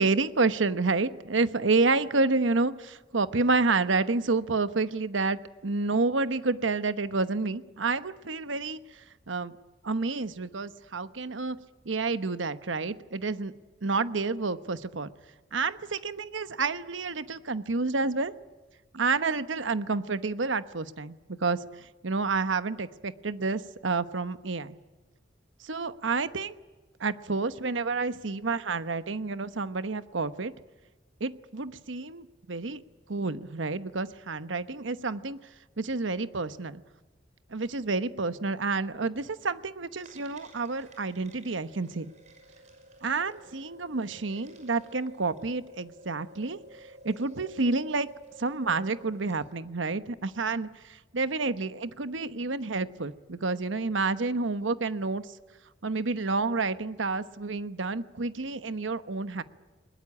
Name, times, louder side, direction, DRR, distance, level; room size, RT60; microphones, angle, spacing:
voice 1, 0.0-9.5 9.8-11.6 11.8-13.5 13.8-15.1 15.5-18.3 18.9-24.7 25.6-26.6 27.0-30.5 31.2-32.8 33.1-35.4 35.8-36.8 37.5-42.1 43.0-46.6 47.0-48.1 48.4-55.4 55.8-59.4, right 3 dB, 85° right, 12 dB, 1.1 m, -29 dB
sound 1, 40.0-49.5, right 1 dB, 40° right, 6.1 m, -52 dB
21.5 x 21.0 x 9.9 m, 1.2 s
head